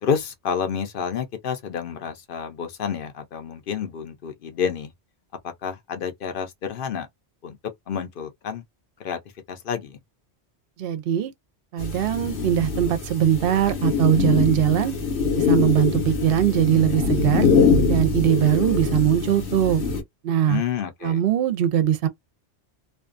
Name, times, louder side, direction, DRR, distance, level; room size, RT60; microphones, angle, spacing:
voice 1, 0.0-4.9 5.4-7.1 7.4-7.6 7.9-8.6 9.0-9.2 9.5-10.0 20.5-21.2, left 7 dB, 55° left, 0.8 m, -29 dB
voice 2, 10.8-11.3 11.7-14.9 15.3-17.5 17.9-19.8 20.2-20.6 21.0-22.1, right 10 dB, 65° right, 0.7 m, -21 dB
sound 1, 11.8-20.0, left 5 dB, 75° left, 1.2 m, -23 dB
2.5 x 2.2 x 2.5 m
omnidirectional pair, 1.1 m